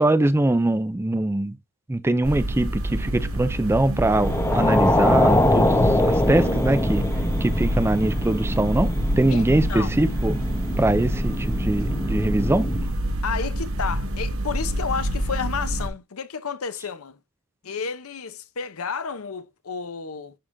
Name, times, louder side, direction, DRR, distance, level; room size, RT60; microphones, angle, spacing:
voice 1, 0.0-1.6 1.9-7.1 7.4-10.4 10.8-12.7, right 2 dB, 10° right, 0.4 m, -22 dB
sound 1, 2.2-15.9, right 1 dB, 65° right, 1.2 m, -27 dB
sound 2, 4.1-12.9, left 1 dB, 15° left, 0.9 m, -24 dB
voice 2, 9.3-9.9 13.2-17.2 17.6-20.3, left 6 dB, 70° left, 0.7 m, -31 dB
11.0 x 3.8 x 2.6 m
head